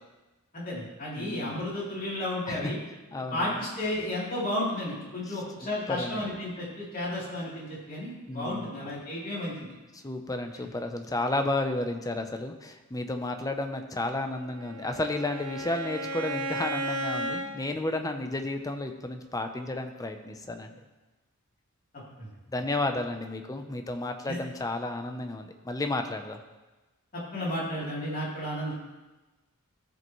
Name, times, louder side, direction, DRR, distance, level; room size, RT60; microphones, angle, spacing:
voice 1, 0.5-2.8 3.3-9.7 22.2-22.3 24.3-24.4 27.1-28.7, left 1 dB, 40° left, -7 dB, 3.2 m, -33 dB
voice 2, 1.2-1.6 2.5-2.7 3.1-3.5 5.3-5.4 5.9-6.2 8.3-8.7 9.9-20.7 22.5-26.4, left 2 dB, 15° left, 6 dB, 0.6 m, -32 dB
Bowed string instrument, 14.3-17.5, right 1 dB, 75° right, 2.0 m, -34 dB
15.5 x 5.3 x 3.1 m, 1.1 s
head